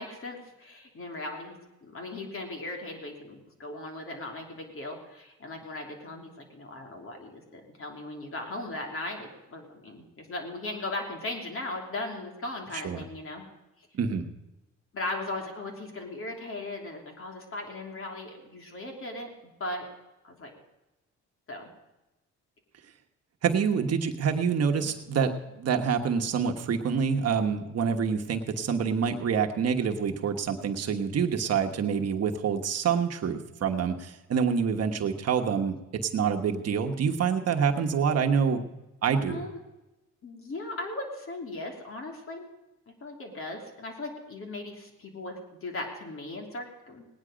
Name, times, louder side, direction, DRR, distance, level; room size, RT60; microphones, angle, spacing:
voice 1, 0.0-13.4 14.9-19.9 20.2-20.5 21.5-21.7 39.3-39.6 40.2-42.5 43.0-47.1, left 2 dB, 45° left, 2 dB, 3.2 m, -38 dB
voice 2, 12.7-13.0 13.9-14.3 23.4-38.6 39.0-39.5, right 6 dB, 55° right, 4 dB, 1.2 m, -27 dB
18.5 x 9.9 x 5.1 m, 1.0 s
cardioid pair, 90°, 30 cm